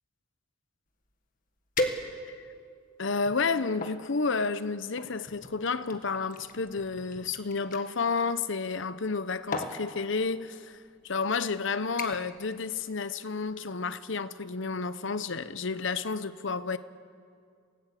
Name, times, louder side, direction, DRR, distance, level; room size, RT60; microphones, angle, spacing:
sound 1, 1.1-1.2 1.8-2.5 3.1-4.0 5.0-7.9 9.0-9.2 9.5-9.8 10.7-10.9 11.3-11.6 12.0-12.4 12.7-13.1 13.4-13.5, left 2 dB, 40° left, 1.8 m, -36 dB
voice 1, 3.0-16.8, left 4 dB, 60° left, 0.9 m, -31 dB
27.5 x 18.0 x 8.6 m
head